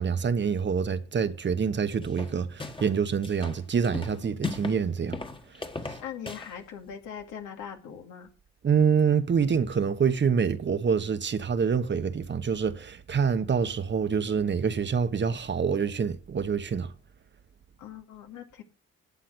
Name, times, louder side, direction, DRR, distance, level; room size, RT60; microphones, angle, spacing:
voice 1, 0.0-5.2 5.9-6.0 8.6-16.9, right 6 dB, 40° right, 1.1 m, -26 dB
sound 1, 2.0-3.0 3.2-4.8 5.1-6.5, left 3 dB, 15° left, 1.5 m, -36 dB
voice 2, 4.1-4.4 6.0-8.3 17.8-18.6, left 8 dB, 85° left, 2.4 m, -41 dB
12.0 x 8.2 x 6.2 m
cardioid pair, 90°, 30 cm